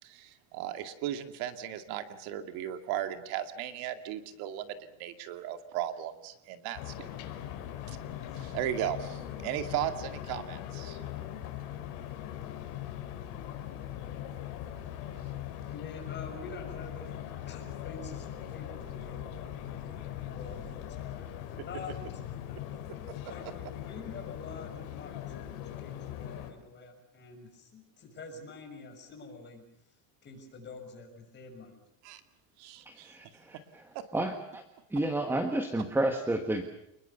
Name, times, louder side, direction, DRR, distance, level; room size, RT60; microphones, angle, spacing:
voice 1, 0.0-7.1 7.9-8.0 8.3-11.0 23.2-23.3 32.0-32.2 32.6-33.1, right 11 dB, 65° right, 8 dB, 2.4 m, -36 dB
sound 1, 6.8-26.5, left 11 dB, 65° left, 4.5 m, -40 dB
voice 2, 15.7-21.0 21.7-22.6 23.3-29.6 30.2-31.8, left 3 dB, 25° left, 3 dB, 6.7 m, -47 dB
voice 3, 32.8-34.6 34.9-36.6, right 1 dB, 5° right, 7 dB, 1.6 m, -31 dB
28.5 x 21.0 x 6.9 m, 0.82 s
cardioid pair, 155°, 40 cm